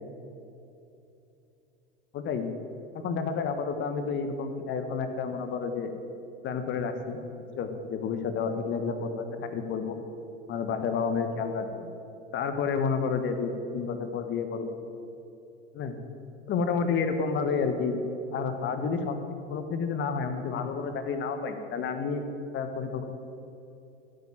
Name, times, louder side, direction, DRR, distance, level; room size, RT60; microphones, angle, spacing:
voice 1, 2.1-2.5 2.9-5.9 6.4-7.2 7.6-9.2 9.5-10.0 10.5-11.9 12.3-14.8 15.7-16.0 16.5-18.0 18.3-19.2 19.5-22.2 22.5-23.0, left 5 dB, 35° left, 8 dB, 1.5 m, -30 dB
15.0 x 9.0 x 7.6 m, 2.8 s
figure-of-eight pair, 75°, 33 cm